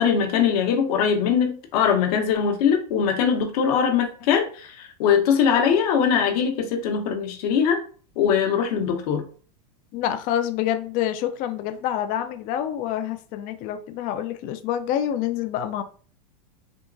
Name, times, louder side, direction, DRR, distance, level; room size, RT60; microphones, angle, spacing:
voice 1, 0.0-7.8 8.2-9.2, left 7 dB, 65° left, 0.9 m, -21 dB
voice 2, 9.9-15.8, left 10 dB, 40° left, 0.4 m, -27 dB
3.5 x 2.8 x 2.6 m
supercardioid pair, 125°, 21 cm